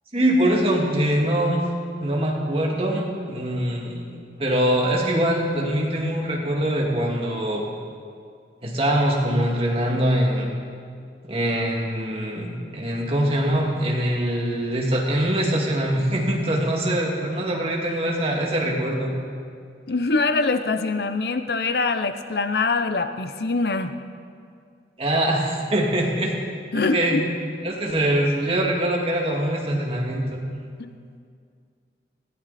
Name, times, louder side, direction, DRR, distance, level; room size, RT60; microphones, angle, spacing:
voice 1, 0.1-1.6 2.0-7.6 8.6-10.5 11.2-19.1 25.0-26.3 26.7-27.2 27.6-30.4, right 1 dB, 30° right, -2 dB, 2.3 m, -23 dB
voice 2, 19.9-23.9 26.7-27.2 30.8-30.9, left 3 dB, 60° left, 9 dB, 0.7 m, -24 dB
20.0 x 15.0 x 4.2 m, 2.2 s
head